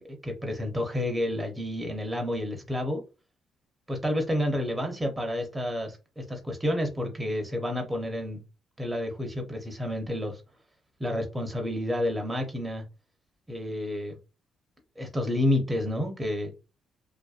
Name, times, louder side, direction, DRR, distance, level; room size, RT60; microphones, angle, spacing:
voice 1, 0.0-3.0 3.9-8.4 8.8-10.4 11.0-12.8 13.5-14.2 15.0-16.5, left 1 dB, 10° right, 0.7 m, -30 dB
2.5 x 2.1 x 2.4 m
cardioid pair, 90°, 0 cm